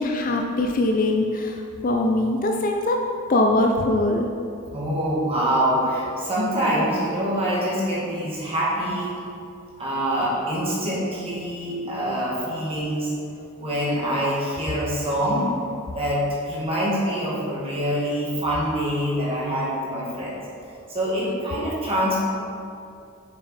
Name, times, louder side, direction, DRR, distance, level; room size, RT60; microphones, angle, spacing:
voice 1, 0.0-3.0 3.3-4.3, left 2 dB, 40° left, 3 dB, 0.4 m, -22 dB
voice 2, 4.7-9.2 9.8-13.1 13.6-15.5 15.9-20.4 20.9-22.2, equal, 25° right, -6 dB, 1.8 m, -25 dB
7.0 x 6.3 x 4.2 m, 2.5 s
head